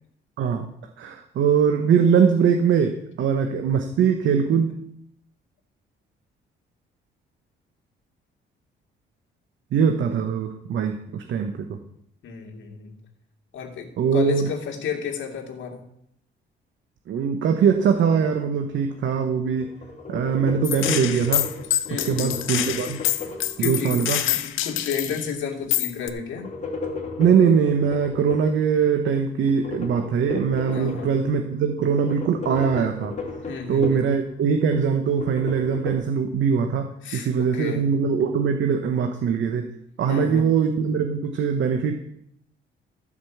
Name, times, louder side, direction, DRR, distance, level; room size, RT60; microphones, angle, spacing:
voice 1, 1.0-4.8 9.7-11.8 14.0-14.5 17.1-19.7 20.1-21.5 21.9-23.0 23.6-24.2 27.2-33.2 33.7-39.7 40.0-41.9, right 6 dB, 70° right, 5 dB, 1.1 m, -22 dB
voice 2, 12.2-13.0 13.5-15.8 21.9-22.5 23.6-26.5 30.7-31.2 33.5-34.0 37.0-37.9 40.1-40.5, left 6 dB, 75° left, 2 dB, 2.4 m, -32 dB
sound 1, 17.5-19.1 19.4-24.2 26.0-28.6 29.4-31.4 31.8-34.2 34.5-35.9, left 4 dB, 35° left, 2.9 m, -36 dB
Gunshot gunfire, 20.6-25.3 25.7-26.1, left 13 dB, 90° left, 0.8 m, -26 dB
13.5 x 5.2 x 7.3 m, 0.73 s
cardioid pair, 90°, 20 cm